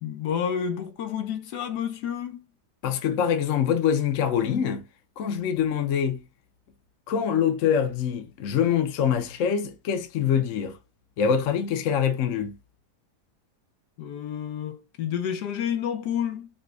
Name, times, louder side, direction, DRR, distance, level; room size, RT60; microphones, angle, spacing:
voice 1, 0.0-2.4 14.0-16.5, left 8 dB, 80° left, 1.2 m, -30 dB
voice 2, 2.8-4.8 5.2-6.2 7.1-10.8 11.2-12.6, left 8 dB, 60° left, 0.9 m, -24 dB
5.0 x 2.2 x 2.4 m
omnidirectional pair, 1.7 m